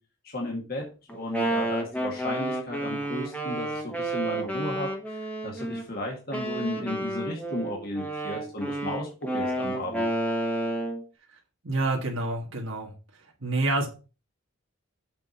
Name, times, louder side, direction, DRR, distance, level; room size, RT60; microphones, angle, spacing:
voice 1, 0.3-10.1, left 1 dB, 45° left, -1 dB, 1.9 m, -34 dB
Wind instrument woodwind instrument, 1.1-5.8 6.3-11.0, right 1 dB, 5° left, 1.2 m, -30 dB
voice 2, 11.6-12.9 13.4-13.9, right 2 dB, 70° right, -1 dB, 1.6 m, -27 dB
7.5 x 4.7 x 5.5 m, 0.33 s
head